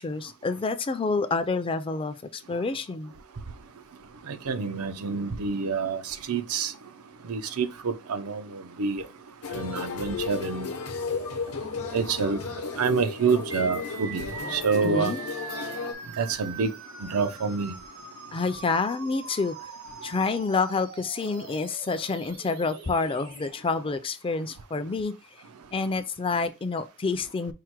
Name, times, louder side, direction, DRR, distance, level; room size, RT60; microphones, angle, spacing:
voice 1, 0.0-3.1 14.8-15.2 18.3-19.7 20.0-25.1 25.7-27.5, left 4 dB, 25° left, 0.4 m, -28 dB
voice 2, 4.3-6.7 7.3-9.0 9.5-10.7 11.9-12.4 12.8-14.3 14.5-15.1 16.2-16.7 17.0-17.7, right 5 dB, 85° right, 0.6 m, -27 dB
sound 1, 9.4-15.9, left 4 dB, 75° left, 0.8 m, -34 dB
sound 2, 13.5-23.5, right 4 dB, 70° right, 1.2 m, -42 dB
4.7 x 2.1 x 4.4 m
head